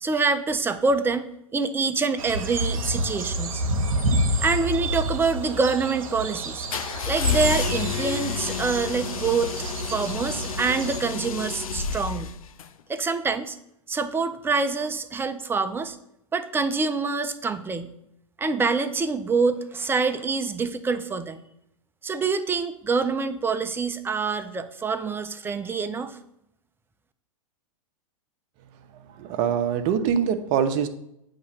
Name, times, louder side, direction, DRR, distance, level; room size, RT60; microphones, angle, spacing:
voice 1, 0.0-3.6 4.4-6.7 7.1-9.5 9.9-12.3 12.9-13.6 13.9-16.0 16.3-17.9 18.4-21.4 22.0-26.2, right 4 dB, 10° right, 10 dB, 0.4 m, -26 dB
sound 1, 2.2-11.0, right 1 dB, 75° right, 0.9 m, -29 dB
sound 2, 6.7-12.7, left 6 dB, 80° left, 0.5 m, -30 dB
voice 2, 29.1-30.9, right 8 dB, 45° right, 8 dB, 0.7 m, -24 dB
8.6 x 2.9 x 5.6 m, 0.79 s
hypercardioid pair, 110°, 18 cm